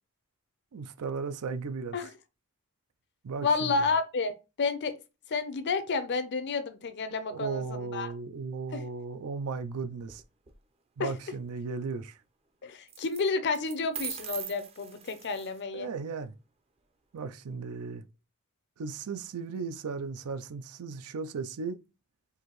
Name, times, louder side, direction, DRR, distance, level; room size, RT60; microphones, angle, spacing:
voice 1, 0.7-2.0 3.2-3.7 7.3-10.2 11.0-12.2 15.7-16.3 17.1-18.0 18.8-21.8, right 4 dB, 75° right, 0.4 m, -36 dB
voice 2, 3.4-5.0 5.3-8.1 8.7-8.8 11.0-11.1 12.6-15.9, left 4 dB, 55° left, 0.6 m, -30 dB
sound 1, 10.0-10.5 12.9-13.2 13.5-15.6, right 8 dB, 25° right, 0.5 m, -40 dB
4.7 x 2.7 x 3.0 m
head